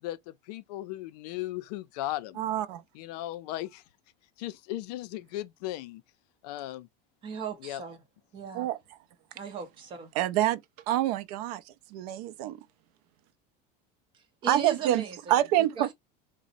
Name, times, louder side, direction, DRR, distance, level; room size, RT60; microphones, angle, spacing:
voice 1, 0.0-2.4 2.9-3.8 4.4-6.0 6.4-6.9 7.6-7.8, left 15 dB, 75° left, 0.4 m, -37 dB
voice 2, 2.4-2.8 8.5-8.8 10.2-10.6 10.9-12.6 14.5-15.0 15.3-15.9, right 13 dB, 65° right, 0.4 m, -27 dB
voice 3, 7.2-8.0 8.3-8.7 9.3-10.1 14.1-15.4 15.8-15.9, right 6 dB, 25° right, 0.6 m, -38 dB
3.9 x 2.0 x 2.5 m
cardioid pair, 175°, 21 cm